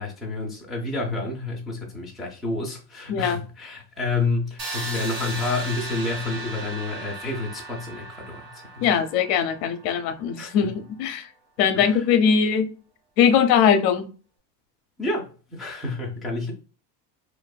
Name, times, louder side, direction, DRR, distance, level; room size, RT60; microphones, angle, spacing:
voice 1, 0.0-8.9 10.4-10.6 11.7-12.0 15.0-16.5, left 3 dB, ahead, 0.3 m, -29 dB
sound 1, 4.6-10.4, right 2 dB, 40° right, 1.2 m, -36 dB
voice 2, 8.8-11.3 11.6-12.7 13.2-14.1, left 7 dB, 75° left, 0.6 m, -21 dB
2.5 x 2.2 x 2.2 m
supercardioid pair, 105°, 49 cm